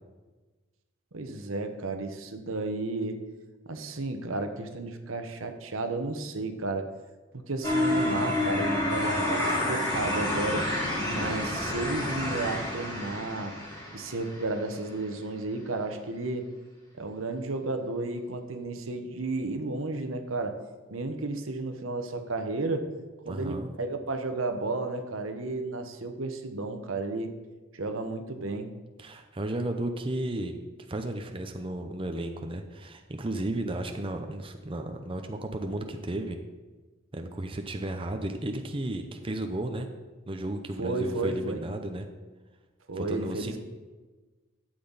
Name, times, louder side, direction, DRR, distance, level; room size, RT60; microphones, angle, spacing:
voice 1, 1.1-3.2 3.7-6.9 7.3-10.7 11.1-13.6 13.9-16.5 17.0-20.6 20.9-22.9 23.3-27.3 27.7-28.7 40.8-41.6 42.9-43.6, right 2 dB, 80° right, 7 dB, 1.0 m, -33 dB
sound 1, 7.6-14.6, left 1 dB, 20° left, 2.9 m, -29 dB
voice 2, 23.3-23.7 29.0-30.6 30.9-36.4 37.1-39.9 40.3-42.1 42.9-43.6, right 1 dB, 25° right, 5 dB, 0.6 m, -34 dB
12.0 x 7.8 x 4.0 m, 1.3 s
head